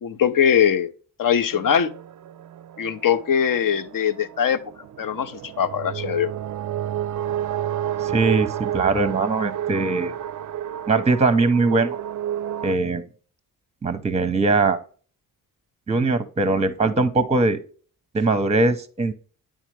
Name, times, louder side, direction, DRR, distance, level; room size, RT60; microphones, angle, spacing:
voice 1, 0.0-0.9 1.2-1.9 2.8-4.6 5.0-6.3, left 8 dB, 50° left, 0.7 m, -21 dB
sound 1, 1.5-12.7, right 11 dB, 45° right, 0.4 m, -31 dB
voice 2, 8.0-10.1 10.9-12.0 12.6-13.0 13.8-14.8 15.9-17.6 18.1-19.1, right 3 dB, 15° right, 0.7 m, -21 dB
9.1 x 3.7 x 3.2 m
supercardioid pair, 50°, 41 cm